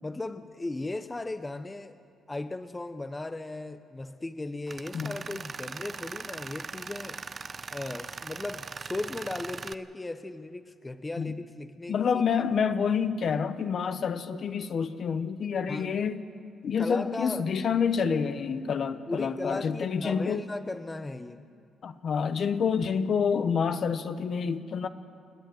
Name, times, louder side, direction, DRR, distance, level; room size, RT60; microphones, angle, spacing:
voice 1, 0.0-2.0 2.3-7.3 7.7-12.2 15.7-16.0 16.8-17.5 19.1-21.4, left 2 dB, 20° left, 10 dB, 0.9 m, -37 dB
Tools, 4.7-9.7, right 5 dB, 40° right, 0.6 m, -40 dB
voice 2, 11.9-16.2 16.6-20.4 21.8-24.9, left 6 dB, 55° left, 10 dB, 1.1 m, -28 dB
28.5 x 10.5 x 9.6 m, 2.4 s
cardioid pair, 90°, 0 cm